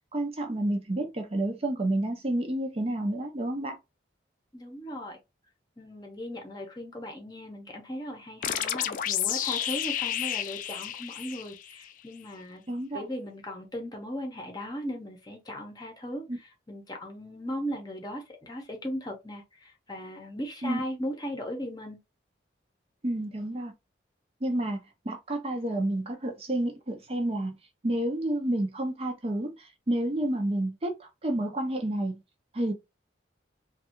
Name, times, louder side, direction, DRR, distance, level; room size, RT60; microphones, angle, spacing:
voice 1, 0.1-3.8 12.7-13.0 16.3-16.4 20.6-20.8 23.0-23.7 24.4-27.5 27.8-32.1 32.5-32.7, right 1 dB, 30° right, 0.6 m, -30 dB
voice 2, 4.5-5.2 5.8-12.6 12.9-22.0, equal, 20° left, 0.8 m, -37 dB
sound 1, 8.4-11.9, left 10 dB, 45° left, 0.3 m, -31 dB
3.2 x 2.3 x 2.9 m
head